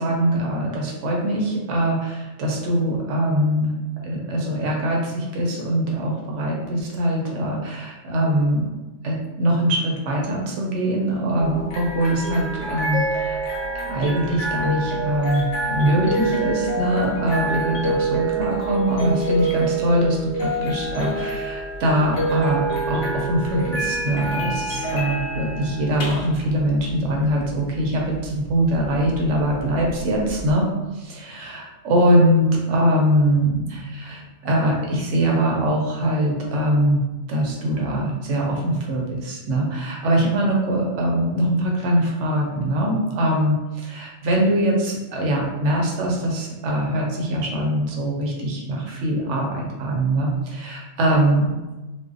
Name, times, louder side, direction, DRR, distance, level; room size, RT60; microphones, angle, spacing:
voice 1, 0.0-8.7 9.0-13.4 13.8-30.7 30.9-37.0 37.3-51.5, right 1 dB, 85° right, -1 dB, 0.9 m, -22 dB
sound 1, 11.4-30.5, right 2 dB, 65° left, 0.9 m, -27 dB
2.5 x 2.1 x 2.4 m, 1.1 s
omnidirectional pair, 1.2 m